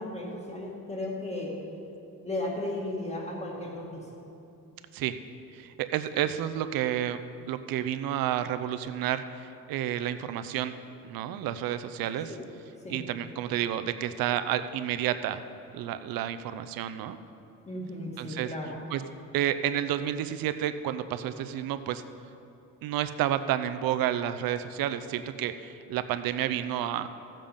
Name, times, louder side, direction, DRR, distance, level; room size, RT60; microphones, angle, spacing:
voice 1, 0.0-1.5 2.2-4.0 6.1-6.2 12.3-12.4 12.8-13.0 17.7-18.8, left 1 dB, 20° left, -2 dB, 2.2 m, -35 dB
voice 2, 5.5-7.2 7.5-10.7 11.0-12.4 12.9-15.4 15.7-17.2 18.2-18.5 18.9-19.0 19.3-22.0 22.8-27.1, right 11 dB, 85° right, 11 dB, 0.7 m, -30 dB
15.0 x 7.5 x 5.2 m, 2.8 s
cardioid pair, 130°, 34 cm